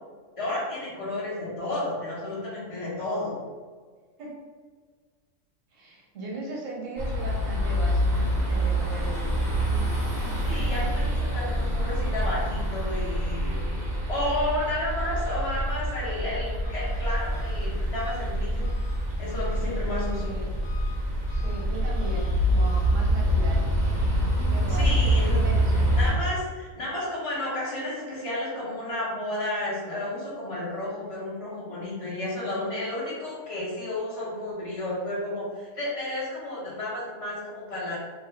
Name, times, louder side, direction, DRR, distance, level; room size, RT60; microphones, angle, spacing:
voice 1, 0.4-3.4 10.4-13.6 14.1-18.7 19.2-20.3 24.7-25.4 26.0-38.0, left 1 dB, 25° left, -8 dB, 0.9 m, -32 dB
voice 2, 5.7-9.4 20.2-20.5 21.3-23.6 24.5-24.9 25.3-26.1, right 2 dB, 70° right, -3 dB, 1.1 m, -38 dB
sound 1, 7.0-26.1, equal, 40° right, 0.7 m, -26 dB
Engine, 16.6-23.4, left 1 dB, 65° left, 0.8 m, -47 dB
2.8 x 2.2 x 3.3 m, 1.5 s
omnidirectional pair, 1.4 m